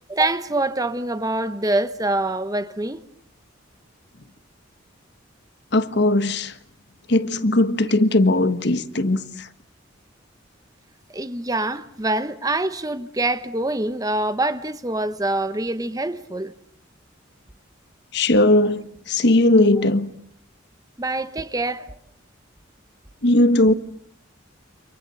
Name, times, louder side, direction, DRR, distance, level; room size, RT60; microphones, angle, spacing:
voice 1, 0.1-3.0 11.1-16.5 21.0-21.9, right 2 dB, 20° right, 1.1 m, -25 dB
voice 2, 5.7-6.5 7.1-9.5 18.1-20.1 23.2-23.7, left 1 dB, 55° left, 1.4 m, -18 dB
30.0 x 27.0 x 7.0 m
head